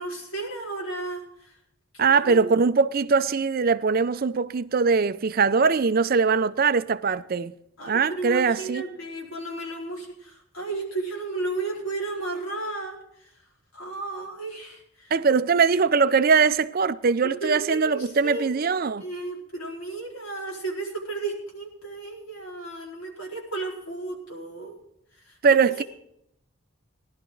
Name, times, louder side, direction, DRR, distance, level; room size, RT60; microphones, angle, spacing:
voice 1, 0.0-1.5 1.9-2.4 7.8-13.3 13.7-15.1 17.4-18.5 19.0-24.7 25.1-25.4, right 3 dB, 70° left, 4.5 m, -34 dB
voice 2, 2.0-7.5 7.9-8.8 15.1-19.0 25.4-25.8, right 5 dB, 45° right, 0.5 m, -21 dB
19.0 x 11.5 x 3.9 m
head